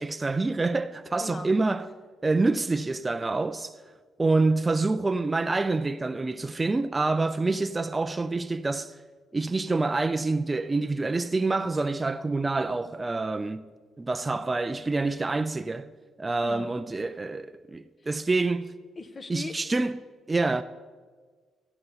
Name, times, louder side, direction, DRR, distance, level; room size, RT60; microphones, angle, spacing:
voice 1, 0.0-1.9 2.2-3.7 4.2-8.9 9.3-13.6 14.0-15.9 16.2-18.7 19.3-20.0 20.3-20.6, right 3 dB, 20° right, 0.4 m, -27 dB
voice 2, 1.2-1.5 16.4-16.7 19.0-19.5, left 3 dB, 35° left, 1.0 m, -38 dB
14.0 x 10.5 x 3.9 m
cardioid pair, 90°, 0 cm